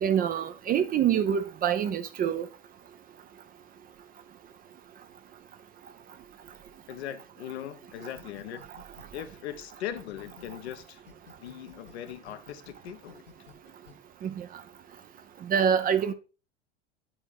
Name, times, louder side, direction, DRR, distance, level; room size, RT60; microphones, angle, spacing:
voice 1, 0.0-2.5 14.2-14.5 15.4-16.1, right 8 dB, 25° right, 0.5 m, -26 dB
voice 2, 6.9-8.6 9.1-11.0 11.4-13.2, left 11 dB, 65° left, 0.8 m, -39 dB
sound 1, 8.2-10.7 11.1-13.9, left 5 dB, 85° left, 1.4 m, -52 dB
8.8 x 3.6 x 4.5 m
figure-of-eight pair, 75°, 35 cm